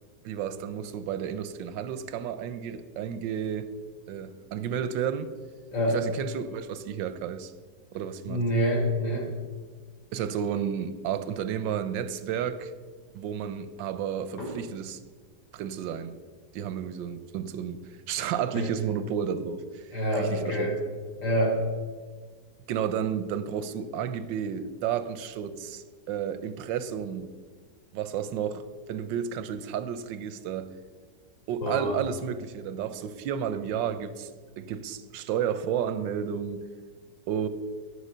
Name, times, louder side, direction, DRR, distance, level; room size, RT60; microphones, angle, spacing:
voice 1, 0.2-3.7 4.1-5.3 5.9-7.5 7.9-8.4 10.1-12.7 13.1-15.0 15.5-16.1 16.5-17.8 18.1-20.7 22.7-27.3 27.9-30.7 31.5-34.3 34.6-36.6 37.3-37.5, right 8 dB, 90° right, 1.4 m, -32 dB
voice 2, 8.3-9.3 14.4-14.5 18.5-18.7 19.9-20.7 21.2-21.6 31.6-32.0, equal, 80° left, 4.1 m, -26 dB
10.0 x 8.3 x 6.6 m
omnidirectional pair, 2.0 m